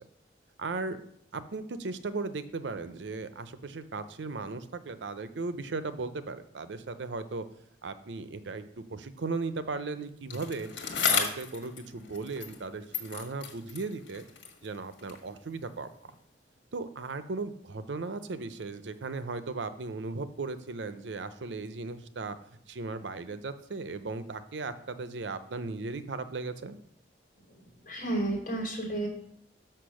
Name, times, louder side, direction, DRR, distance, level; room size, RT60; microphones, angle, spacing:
voice 1, 0.6-1.0 1.3-7.5 7.8-10.7 11.1-14.2 14.6-16.1 16.7-22.4 22.7-26.8, right 3 dB, 80° right, 12 dB, 0.6 m, -37 dB
Bicycle, 10.3-12.7 12.9-15.3 16.1-16.2, left 6 dB, 85° left, 1.7 m, -34 dB
voice 2, 27.8-29.1, right 2 dB, 45° left, -1 dB, 3.1 m, -31 dB
6.6 x 5.9 x 6.3 m, 0.70 s
head